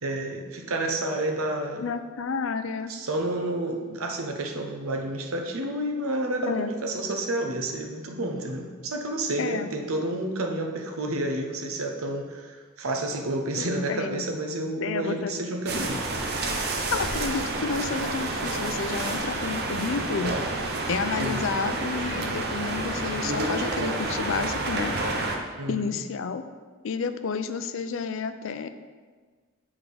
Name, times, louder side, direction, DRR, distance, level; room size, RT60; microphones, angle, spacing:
voice 1, 0.0-1.8 2.9-16.0 21.2-21.4 25.5-26.0, right 1 dB, 90° right, 3 dB, 0.9 m, -30 dB
voice 2, 1.8-2.9 6.5-6.7 9.4-9.7 13.6-14.3 14.8-15.3 16.9-20.4 20.9-24.9 25.7-26.4 26.8-28.7, left 5 dB, 65° left, 10 dB, 0.4 m, -30 dB
sound 1, 15.7-25.4, right 2 dB, 50° right, 0.7 m, -29 dB
8.0 x 3.6 x 4.9 m, 1.5 s
head